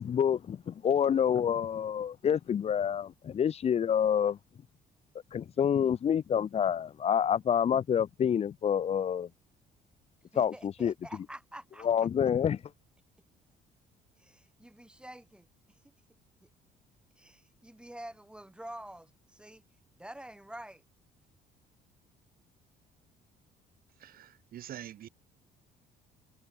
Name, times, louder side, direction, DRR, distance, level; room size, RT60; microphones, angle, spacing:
voice 1, 0.0-4.4 5.3-9.3 10.4-10.9 11.8-12.6, left 8 dB, 35° left, 0.7 m, -27 dB
voice 2, 10.3-11.9 14.2-15.8 16.4-16.5 17.2-19.6 20.0-20.8, right 1 dB, 5° right, 4.6 m, -47 dB
voice 3, 24.0-25.1, right 11 dB, 60° right, 3.2 m, -45 dB
cardioid pair, 110°, 17 cm